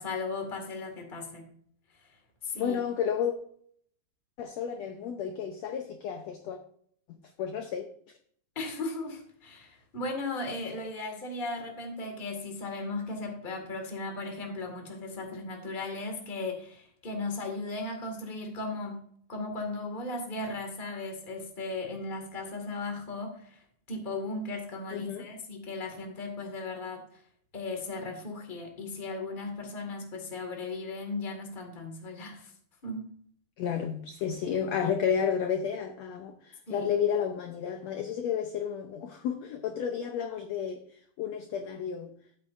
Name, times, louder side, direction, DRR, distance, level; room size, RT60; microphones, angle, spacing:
voice 1, 0.0-1.4 2.0-2.1 2.4-2.8 8.5-18.9 19.3-23.6 23.9-27.2 27.5-32.5 32.8-33.1 36.7-36.9, left 3 dB, 20° left, 1.5 m, -36 dB
voice 2, 2.5-3.3 4.4-6.6 7.4-7.9 24.9-25.3 33.6-42.1, left 7 dB, 75° left, 1.6 m, -31 dB
14.5 x 8.3 x 2.6 m
omnidirectional pair, 3.8 m